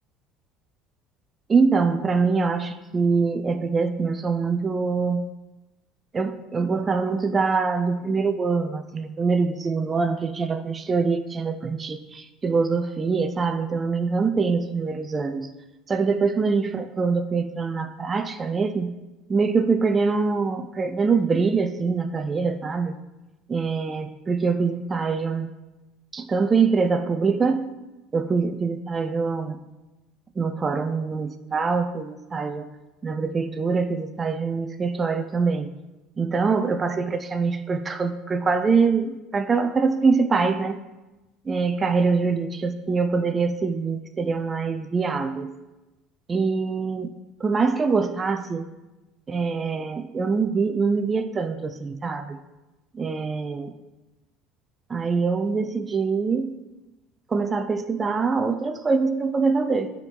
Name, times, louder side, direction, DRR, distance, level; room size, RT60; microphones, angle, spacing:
voice 1, 1.5-5.3 6.1-15.5 15.9-18.9 19.3-22.9 23.5-25.5 26.1-27.7 28.1-29.6 30.4-32.7 33.0-35.7 36.2-40.8 41.4-45.6 46.3-47.1 47.4-48.7 49.3-52.4 52.9-53.7 54.9-56.6 57.3-59.9, right 4 dB, 30° right, 9 dB, 0.5 m, -24 dB
8.9 x 3.7 x 5.3 m, 1.1 s
hypercardioid pair, 80°, 0 cm